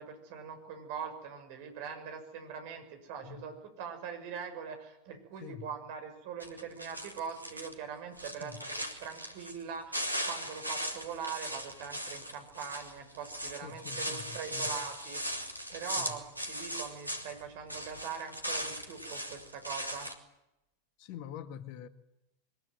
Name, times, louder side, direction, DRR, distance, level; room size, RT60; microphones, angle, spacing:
voice 1, 0.0-20.1, right 7 dB, 45° right, 6.4 m, -42 dB
sound 1, 6.4-7.7 8.1-9.6 9.9-17.4 17.7-20.1, equal, 90° right, 2.9 m, -38 dB
voice 2, 13.6-14.8 16.0-16.1 21.0-21.9, left 9 dB, 45° left, 1.8 m, -45 dB
23.0 x 21.5 x 9.6 m
figure-of-eight pair, 90°, 0 cm